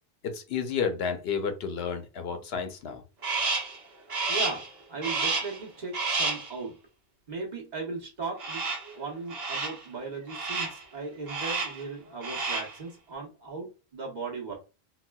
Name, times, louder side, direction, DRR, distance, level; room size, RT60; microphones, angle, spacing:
voice 1, 0.2-3.0, left 6 dB, 70° left, 0.8 m, -31 dB
Crow, 3.2-3.8 4.1-4.7 5.0-5.6 5.9-6.5 8.4-8.9 9.3-9.8 10.3-10.8 11.3-11.8 12.1-12.8, right 3 dB, 65° right, 1.1 m, -30 dB
voice 2, 4.3-4.6 4.9-6.8 7.3-8.6 8.9-14.6, right 4 dB, 45° right, 1.0 m, -37 dB
4.0 x 2.1 x 2.2 m
omnidirectional pair, 1.1 m